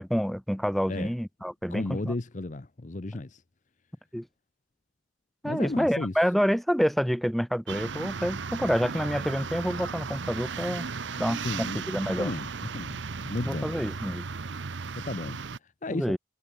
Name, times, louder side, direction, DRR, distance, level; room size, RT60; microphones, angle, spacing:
voice 1, 0.0-2.1 4.1-4.3 5.4-10.9 11.2-12.3 13.5-14.3 15.9-16.2, equal, ahead, 1.7 m, -28 dB
voice 2, 1.7-3.4 5.4-6.1 11.4-11.9 12.2-12.5 12.7-13.0 13.3-13.7 15.0-15.4 15.8-16.2, left 2 dB, 40° left, 0.7 m, -33 dB
sound 1, 7.7-15.6, right 5 dB, 70° right, 0.8 m, -36 dB
head